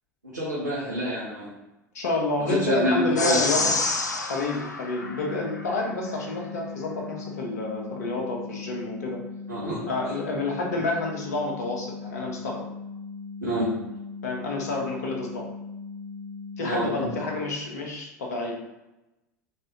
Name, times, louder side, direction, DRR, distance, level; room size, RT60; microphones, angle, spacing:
voice 1, 0.2-1.5 2.5-3.6 9.5-9.9 13.4-13.9 16.6-17.1, right 1 dB, 80° right, -7 dB, 0.9 m, -27 dB
voice 2, 1.9-3.8 4.3-9.2 9.9-12.6 14.2-15.5 16.6-18.5, left 3 dB, 65° left, -1 dB, 1.0 m, -29 dB
sound 1, 3.2-5.8, left 3 dB, 85° left, 0.4 m, -28 dB
sound 2, 4.9-17.4, left 4 dB, 50° right, 0.7 m, -39 dB
3.6 x 3.2 x 2.9 m, 0.97 s
figure-of-eight pair, 75°, 9 cm